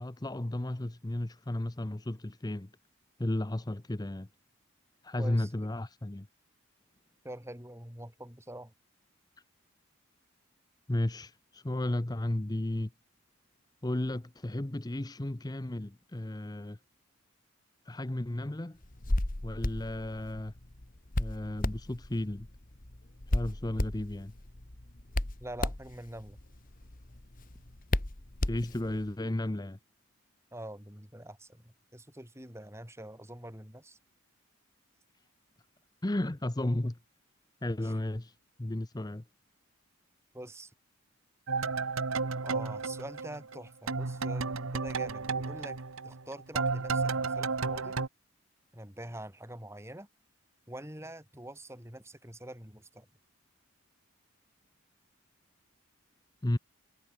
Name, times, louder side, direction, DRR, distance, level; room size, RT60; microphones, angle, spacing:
voice 1, 0.0-2.7 3.2-4.3 5.0-6.3 10.9-12.9 13.8-16.8 17.8-18.8 19.4-20.5 21.2-22.5 23.3-24.3 28.5-29.8 36.0-37.0 37.6-39.2 56.4-56.6, left 1 dB, 20° left, 0.7 m, -33 dB
voice 2, 5.2-5.5 7.2-8.7 25.4-26.4 30.5-34.0 37.8-37.9 40.3-40.7 42.4-48.0 48.7-50.1 50.7-53.1, right 1 dB, 15° right, 5.9 m, -45 dB
Hands, 18.8-29.1, left 1 dB, 40° left, 1.6 m, -35 dB
sound 1, 41.5-43.6 43.9-48.1, right 4 dB, 75° right, 1.2 m, -32 dB
head